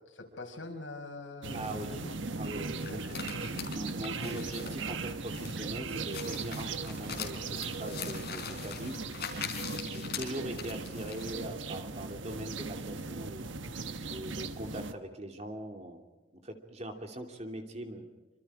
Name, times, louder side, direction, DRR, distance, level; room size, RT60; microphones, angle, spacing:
voice 1, 0.1-2.1 2.8-3.2 3.5-3.7 9.9-10.2, left 2 dB, 80° left, 3 dB, 5.1 m, -44 dB
sound 1, 1.4-14.9, right 3 dB, 75° right, 1.3 m, -38 dB
voice 2, 1.5-2.0 2.4-3.0 3.7-7.4 7.8-9.0 9.9-13.5 14.1-16.0 16.3-18.1, right 1 dB, 35° right, 4 dB, 2.8 m, -41 dB
sound 2, 2.8-11.3, left 7 dB, 50° left, 4.8 m, -42 dB
26.5 x 26.0 x 4.9 m, 1.2 s
head